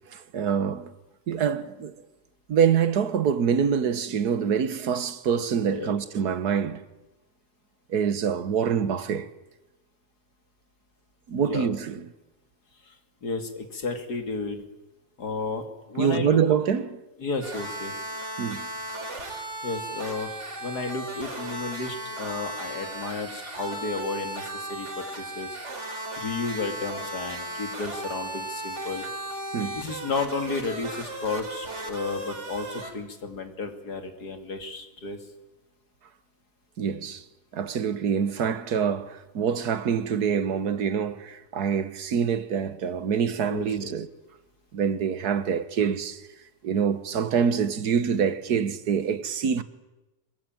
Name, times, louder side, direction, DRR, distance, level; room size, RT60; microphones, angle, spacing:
voice 1, 0.1-0.9 1.3-2.0 2.5-6.8 7.9-9.3 11.3-12.0 16.0-16.9 18.4-18.7 29.5-29.8 36.8-37.2 37.5-44.1 44.7-46.2 46.6-49.6, right 7 dB, 70° right, 1.7 m, -25 dB
voice 2, 5.7-6.0 11.4-11.7 12.9-13.0 13.2-14.6 15.2-16.4 17.2-17.9 19.6-25.6 26.2-29.1 29.7-35.2 43.5-43.9, left 4 dB, 75° left, 3.0 m, -32 dB
sound 1, 17.4-32.9, right 1 dB, 45° right, 3.7 m, -36 dB
24.5 x 22.5 x 9.1 m
omnidirectional pair, 1.7 m